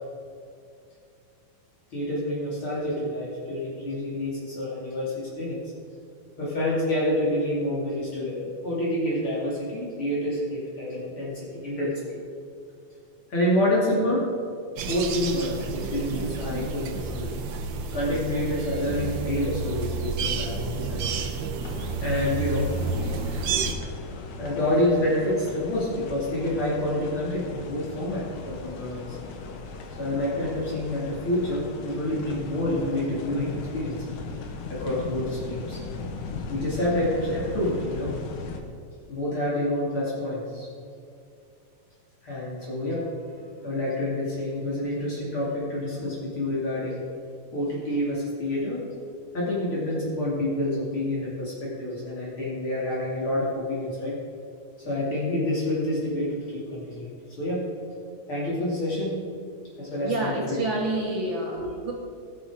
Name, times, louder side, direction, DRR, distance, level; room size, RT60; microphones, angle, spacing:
voice 1, 1.9-5.6 6.4-12.0 13.3-14.3 14.8-17.4 17.9-21.1 22.0-22.7 24.4-29.2 30.0-34.0 34.7-35.8 36.5-38.1 39.1-40.7 42.2-43.1 43.6-47.0 47.5-48.9 49.3-54.2 54.8-57.1 57.4-57.7 58.3-59.2 59.8-60.6 61.5-61.7, left 1 dB, 45° left, -7 dB, 3.3 m, -28 dB
sound 1, 14.8-23.7, right 4 dB, 80° right, 1.0 m, -30 dB
sound 2, 21.6-38.6, left 3 dB, 90° left, 2.5 m, -38 dB
voice 2, 60.0-61.9, right 2 dB, 50° right, -1 dB, 1.9 m, -28 dB
18.5 x 7.4 x 4.9 m, 2.4 s
omnidirectional pair, 3.3 m